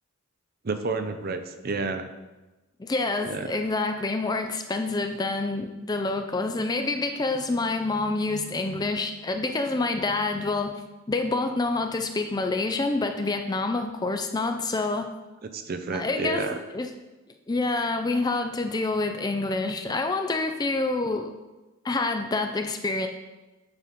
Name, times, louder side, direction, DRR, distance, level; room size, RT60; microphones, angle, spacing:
voice 1, 0.6-2.1 3.2-3.6 15.4-16.6, right 3 dB, 45° right, 8 dB, 0.5 m, -30 dB
voice 2, 2.8-10.8 11.1-15.1 15.9-16.5 16.7-16.9 17.5-21.3 21.8-23.1, left 3 dB, 20° left, 6 dB, 0.4 m, -27 dB
8.2 x 4.1 x 5.1 m, 1.1 s
head